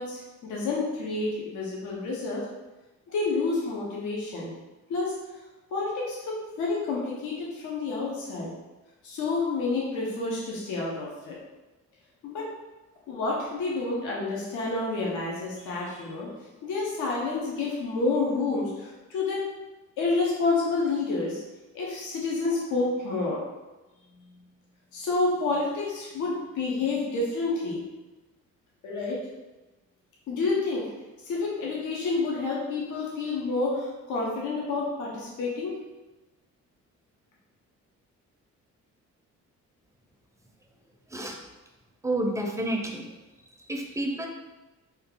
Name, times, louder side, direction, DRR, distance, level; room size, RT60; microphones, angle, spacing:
voice 1, 0.0-2.5 3.1-4.5 4.9-5.1 5.7-8.5 9.0-11.4 12.2-12.5 13.1-16.3 16.6-19.4 20.0-21.4 21.7-23.4 24.9-27.8 28.8-29.2 30.3-30.9 31.2-35.8, left 3 dB, 80° left, -4 dB, 0.8 m, -29 dB
voice 2, 42.0-43.0 43.7-44.3, right 1 dB, 10° right, 1 dB, 0.5 m, -29 dB
3.0 x 2.3 x 3.6 m, 1.1 s
cardioid pair, 90°, 30 cm